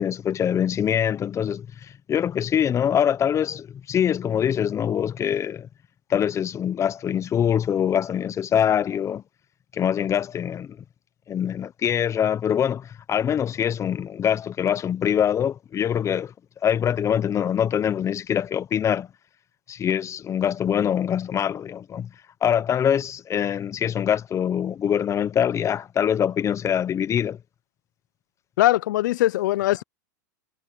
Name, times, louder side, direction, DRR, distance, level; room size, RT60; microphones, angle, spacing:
voice 1, 0.0-5.7 6.1-9.2 9.7-10.8 11.3-16.3 16.6-19.1 19.7-22.1 22.4-27.4, left 9 dB, 30° left, 1.0 m, -24 dB
voice 2, 28.6-29.8, left 16 dB, 75° left, 0.6 m, -21 dB
hypercardioid pair, 105°, 10 cm